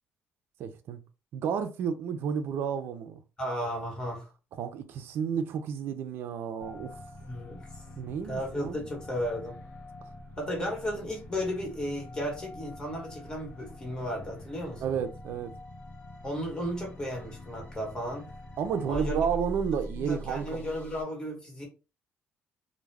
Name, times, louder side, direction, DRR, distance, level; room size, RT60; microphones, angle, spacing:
voice 1, 0.6-1.0 1.3-3.2 4.6-7.0 8.0-8.9 14.8-15.5 18.6-20.7, right 7 dB, 60° right, 0.4 m, -31 dB
voice 2, 3.4-4.3 7.2-7.6 8.3-9.5 10.4-14.9 16.2-18.3 18.9-19.2 19.9-21.6, equal, 20° left, 1.2 m, -34 dB
sound 1, 6.6-21.0, equal, 40° left, 0.7 m, -44 dB
2.3 x 2.1 x 3.3 m
cardioid pair, 130°, 4 cm